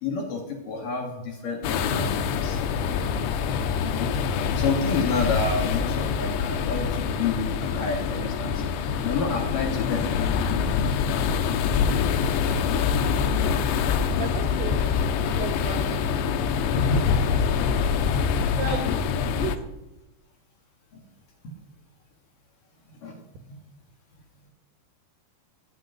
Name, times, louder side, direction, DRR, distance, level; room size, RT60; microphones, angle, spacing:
voice 1, 0.0-2.6 3.8-4.1 4.6-10.1 16.7-17.2 18.7-18.8 21.4-21.5 22.9-23.2, left 3 dB, 50° left, 1 dB, 3.2 m, -29 dB
sound 1, 1.6-19.6, left 6 dB, 75° left, 2.9 m, -25 dB
voice 2, 14.2-14.7 15.4-15.9 18.6-19.0 19.4-19.5, right 4 dB, 70° right, 6 dB, 3.6 m, -32 dB
18.0 x 6.7 x 9.5 m, 0.95 s
omnidirectional pair, 5.5 m